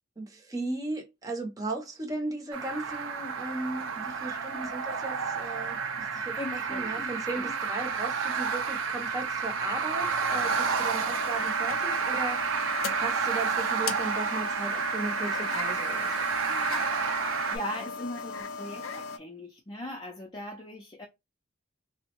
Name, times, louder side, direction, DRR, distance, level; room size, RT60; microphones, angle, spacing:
voice 1, 0.2-12.4 13.0-16.3, right 2 dB, 20° right, 0.7 m, -36 dB
sound 1, 2.5-17.6, right 6 dB, 75° right, 0.5 m, -30 dB
voice 2, 6.4-7.5 16.5-21.1, left 1 dB, 25° left, 0.5 m, -40 dB
sound 2, 10.3-19.2, left 5 dB, 85° left, 0.4 m, -38 dB
3.5 x 2.0 x 2.9 m
head